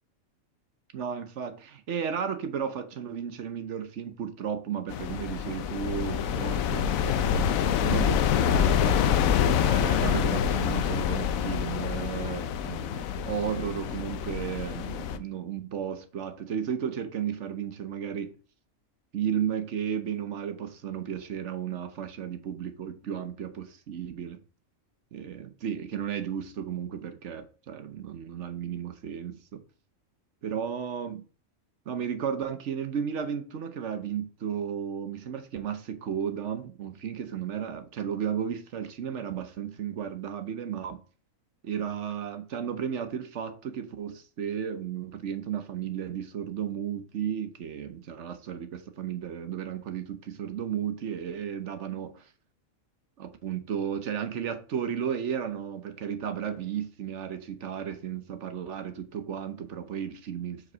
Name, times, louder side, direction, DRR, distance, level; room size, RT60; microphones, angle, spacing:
voice 1, 0.9-9.0 9.6-18.4 19.1-24.4 25.1-29.6 30.4-31.2 31.9-41.0 41.6-52.3 53.2-60.7, right 8 dB, 60° right, 1.1 m, -34 dB
sound 1, 4.9-15.2, left 8 dB, 80° left, 1.0 m, -26 dB
5.0 x 4.6 x 6.1 m
omnidirectional pair, 1.4 m